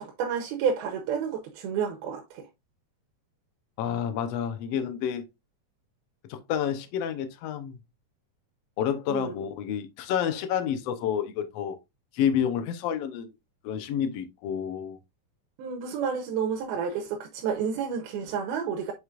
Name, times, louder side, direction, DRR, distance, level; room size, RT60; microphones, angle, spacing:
voice 1, 0.0-2.5 9.1-9.3 15.6-18.9, right 6 dB, 90° right, 2.8 m, -30 dB
voice 2, 3.8-5.2 6.3-7.8 8.8-11.8 12.1-13.3 13.6-15.0, left 9 dB, 90° left, 1.4 m, -29 dB
7.7 x 5.0 x 2.5 m
omnidirectional pair, 4.2 m